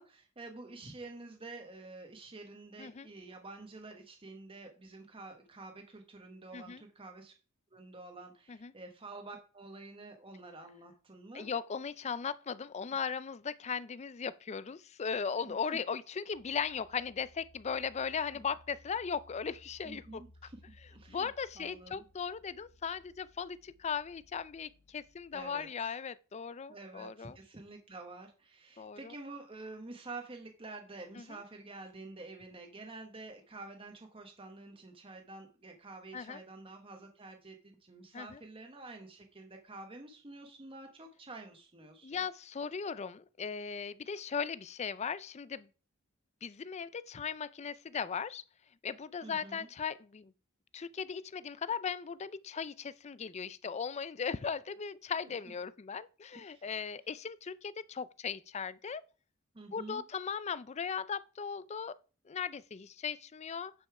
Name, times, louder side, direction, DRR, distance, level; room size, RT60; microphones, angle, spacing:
voice 1, 0.0-7.3 7.7-11.5 15.4-15.5 19.8-20.6 20.9-21.3 21.6-22.0 25.3-25.9 26.7-42.2 49.2-49.7 56.3-56.6 59.5-60.1, right 3 dB, 25° right, 1.1 m, -49 dB
voice 2, 11.3-20.2 21.1-27.4 28.8-29.1 31.2-31.3 36.1-36.4 38.1-38.4 42.0-45.7 46.4-48.4 48.8-50.3 50.7-59.0 59.7-61.9 62.3-63.7, left 6 dB, 30° left, 0.4 m, -38 dB
sound 1, 16.3-25.7, left 1 dB, 85° left, 1.1 m, -62 dB
9.1 x 5.4 x 4.7 m
head